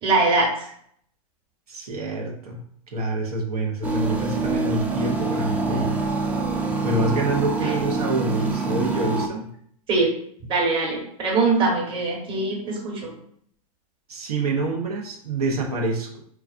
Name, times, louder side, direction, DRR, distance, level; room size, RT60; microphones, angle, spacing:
voice 1, 0.0-0.7 7.6-7.7 9.9-10.1 10.5-13.1, right 3 dB, 25° right, -1 dB, 1.2 m, -22 dB
voice 2, 1.7-2.6 2.9-6.0 6.8-9.5 14.1-16.2, right 2 dB, 85° right, -1 dB, 0.9 m, -26 dB
sound 1, 3.8-9.3, right 3 dB, 10° right, 0.3 m, -25 dB
4.6 x 2.3 x 2.5 m, 0.65 s
hypercardioid pair, 125°, 19 cm